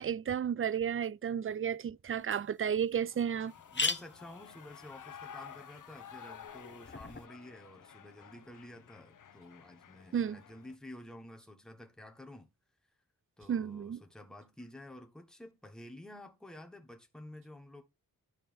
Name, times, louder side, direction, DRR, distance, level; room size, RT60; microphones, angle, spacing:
voice 1, 0.0-3.5 10.1-10.4 13.5-14.0, right 8 dB, 40° right, 0.4 m, -32 dB
sound 1, 2.2-2.3 2.7-2.8 3.1-3.2 3.5-7.3, left 4 dB, 30° left, 1.1 m, -40 dB
Shout / Cheering, 3.0-10.8, left 8 dB, 60° left, 0.7 m, -52 dB
voice 2, 3.7-12.5 13.4-17.8, left 1 dB, ahead, 1.3 m, -51 dB
11.0 x 4.2 x 3.5 m
cardioid pair, 60°, 36 cm